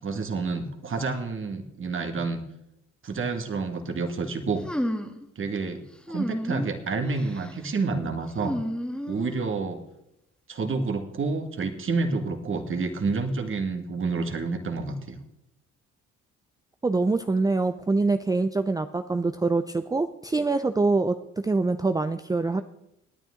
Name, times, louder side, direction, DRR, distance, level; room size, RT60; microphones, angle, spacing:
voice 1, 0.0-2.4 3.0-4.6 5.4-8.6 9.1-9.8 10.5-15.2, right 4 dB, 45° right, 6 dB, 1.8 m, -29 dB
sound 1, 4.6-5.3 6.1-6.7 7.1-7.5 8.4-9.5, equal, 5° left, 1.3 m, -31 dB
voice 2, 16.8-21.2 21.4-22.6, right 3 dB, 10° right, 10 dB, 0.5 m, -24 dB
19.5 x 9.0 x 3.7 m, 0.82 s
cardioid pair, 90°, 30 cm